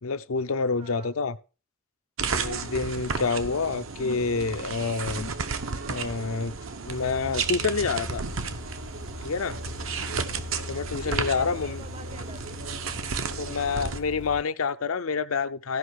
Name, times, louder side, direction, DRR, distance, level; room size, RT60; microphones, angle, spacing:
voice 1, 0.0-1.4 2.4-5.3 5.9-6.5 6.9-8.2 9.2-9.6 10.7-11.8 13.4-15.8, left 4 dB, 80° left, 0.7 m, -28 dB
voice 2, 0.8-1.2 9.6-10.0 10.8-12.6, right 3 dB, 30° right, 0.6 m, -48 dB
sound 1, 2.2-14.0, right 5 dB, 70° right, 1.0 m, -33 dB
sound 2, 6.9-14.4, left 3 dB, 40° left, 0.4 m, -41 dB
14.5 x 5.5 x 4.7 m
head